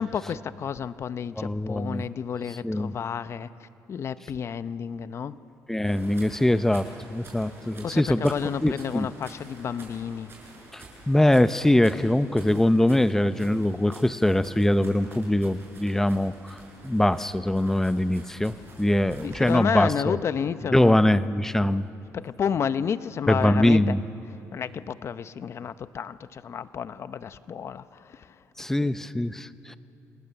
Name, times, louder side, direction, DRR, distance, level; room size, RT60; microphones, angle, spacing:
voice 1, 0.0-3.5 3.9-5.4 7.8-10.3 19.2-21.0 22.1-24.0 24.5-28.3 28.8-28.9, left 7 dB, 45° left, 14 dB, 0.7 m, -31 dB
voice 2, 1.4-2.0 2.5-2.9 5.7-8.3 8.6-9.1 10.7-20.2 20.7-21.9 23.3-24.0 28.6-29.8, left 1 dB, 5° left, 13 dB, 0.6 m, -23 dB
sound 1, 5.8-19.6, right 2 dB, 40° right, 6.5 m, -48 dB
27.5 x 19.0 x 6.9 m, 3.0 s
cardioid pair, 115°, 6 cm